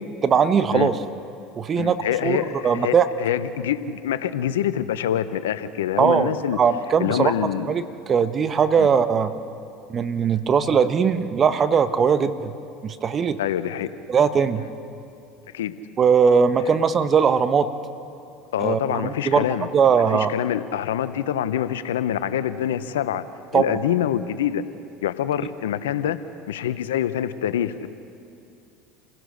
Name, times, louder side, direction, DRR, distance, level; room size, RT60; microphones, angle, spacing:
voice 1, 0.2-1.0 1.5-2.4 2.6-3.1 6.0-6.3 6.6-7.3 7.7-7.8 8.1-9.3 9.9-12.5 12.8-13.4 14.1-14.6 16.0-17.7 18.6-19.4 19.7-20.3 23.5-23.8, right 6 dB, 35° right, 11 dB, 1.2 m, -20 dB
voice 2, 1.7-6.6 7.0-7.7 8.8-8.9 10.3-10.4 13.4-13.9 15.5-15.7 18.5-19.7 20.1-23.2 23.5-24.6 25.0-26.2 26.5-27.9, left 10 dB, 90° left, 13 dB, 0.8 m, -25 dB
28.5 x 17.0 x 6.5 m, 2.6 s
hypercardioid pair, 90°, 0 cm